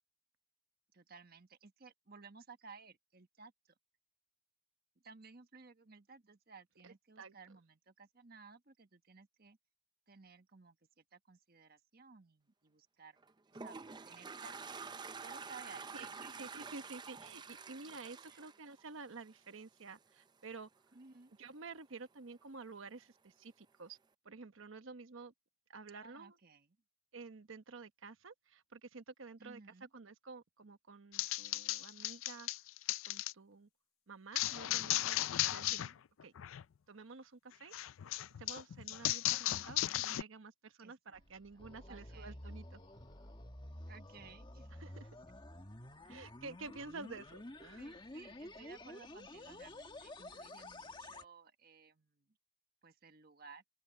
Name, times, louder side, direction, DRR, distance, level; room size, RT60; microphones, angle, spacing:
voice 1, 0.9-3.7 5.0-9.6 10.1-13.2 13.5-14.6 15.2-16.4 18.3-18.4 20.9-21.3 26.0-26.8 29.4-29.9 35.5-36.0 39.4-39.7 40.8-42.4 43.9-44.7 47.8-52.3 52.8-53.6, right 4 dB, 50° right, 1.3 m, -57 dB
voice 2, 6.8-7.3 15.9-16.1 16.4-20.7 21.4-24.0 24.2-25.3 25.7-26.3 27.1-29.6 29.9-32.5 33.0-33.7 34.1-35.8 36.2-36.3 36.9-37.7 38.4-42.8 44.8-45.1 46.0-48.0, right 4 dB, 80° right, 1.0 m, -51 dB
Toilet flush, 13.2-19.5, right 5 dB, 20° right, 0.5 m, -48 dB
sound 1, 31.1-33.3 34.4-35.9 36.2-36.6 37.7-40.2, left 15 dB, 85° left, 0.4 m, -36 dB
sound 2, 41.1-51.2, left 1 dB, 25° left, 1.7 m, -51 dB
open air
head